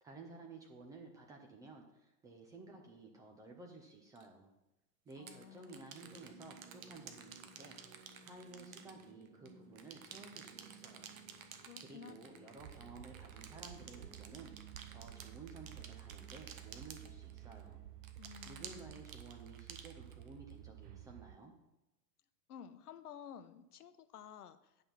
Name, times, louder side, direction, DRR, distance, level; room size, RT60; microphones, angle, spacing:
voice 1, 0.0-4.5 5.1-7.8 8.2-11.2 11.8-14.5 14.9-17.8 18.5-21.5, right 3 dB, 10° right, 1 dB, 0.4 m, -54 dB
sound 1, 4.2-4.3 5.1-9.5 9.8-17.6 18.0-20.5, right 8 dB, 55° right, 1.3 m, -53 dB
voice 2, 5.2-5.9 11.5-12.5 18.2-19.0 22.5-24.8, left 8 dB, 65° left, 12 dB, 0.8 m, -53 dB
sound 2, 6.0-19.3, right 4 dB, 90° right, 2.2 m, -61 dB
sound 3, 12.6-21.4, right 13 dB, 70° right, 0.5 m, -53 dB
9.2 x 5.5 x 5.8 m, 0.94 s
figure-of-eight pair, 100°, 50 cm